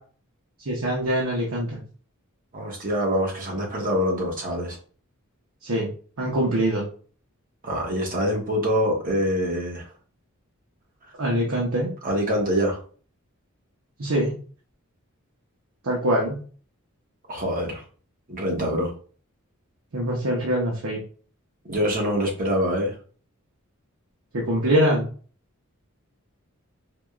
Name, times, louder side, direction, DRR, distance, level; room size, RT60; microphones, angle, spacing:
voice 1, 0.7-1.8 5.6-5.9 6.2-6.8 11.2-11.9 14.0-14.3 15.8-16.4 19.9-21.0 24.3-25.1, right 1 dB, 90° right, -3 dB, 0.9 m, -23 dB
voice 2, 2.5-4.8 7.6-9.8 12.0-12.8 17.3-17.8 18.3-18.9 21.7-22.9, equal, 40° right, -1 dB, 1.2 m, -25 dB
4.8 x 2.3 x 2.4 m, 0.41 s
head